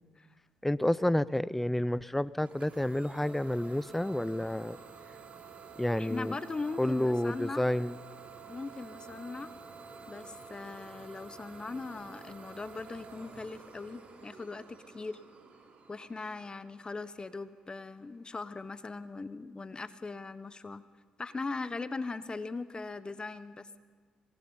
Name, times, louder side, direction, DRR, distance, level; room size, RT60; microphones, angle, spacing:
voice 1, 0.6-4.8 5.8-6.3 6.8-8.0, left 1 dB, 5° left, 19 dB, 0.6 m, -30 dB
Idling / Domestic sounds home sounds, 2.4-17.9, right 5 dB, 50° right, 3.6 m, -50 dB
voice 2, 6.0-7.6 8.5-9.5 10.1-15.2 15.9-20.8 21.2-23.8, left 3 dB, 30° left, 13 dB, 1.1 m, -40 dB
26.0 x 19.5 x 5.6 m, 1.4 s
hypercardioid pair, 55°, 3 cm